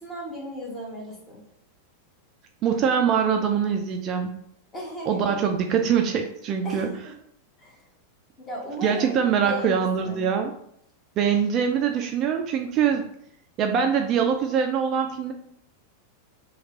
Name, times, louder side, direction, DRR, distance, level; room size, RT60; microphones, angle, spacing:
voice 1, 0.0-1.4 4.7-5.4 6.6-7.1 7.6-7.8 8.4-10.4, equal, 20° left, -4 dB, 1.3 m, -36 dB
voice 2, 2.6-4.4 5.1-6.9 8.8-10.5 11.2-13.0 13.6-15.3, right 7 dB, 35° right, 4 dB, 0.3 m, -23 dB
3.1 x 2.3 x 4.2 m, 0.72 s
figure-of-eight pair, 90°, 0 cm